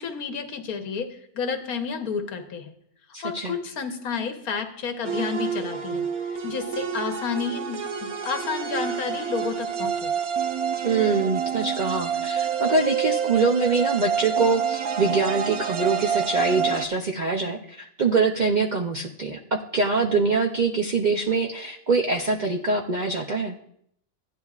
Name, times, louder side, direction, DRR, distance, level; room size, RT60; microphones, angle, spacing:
voice 1, 0.0-2.7 3.2-10.1, left 6 dB, 85° left, 6 dB, 1.4 m, -31 dB
voice 2, 3.1-3.6 10.8-23.6, right 4 dB, 60° right, 1 dB, 0.5 m, -24 dB
sound 1, 5.0-16.9, right 7 dB, 85° right, 1.3 m, -28 dB
14.5 x 9.8 x 2.4 m, 0.72 s
omnidirectional pair, 1.5 m